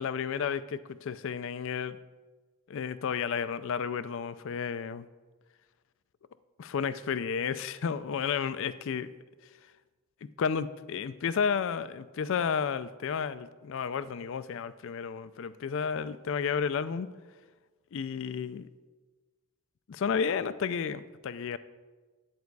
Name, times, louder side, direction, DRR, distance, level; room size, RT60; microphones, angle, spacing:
voice 1, 0.0-2.0 2.7-5.1 6.6-9.1 10.2-17.1 17.9-18.7 19.9-21.6, left 6 dB, 60° left, 15 dB, 0.4 m, -32 dB
10.5 x 8.1 x 4.7 m, 1.3 s
head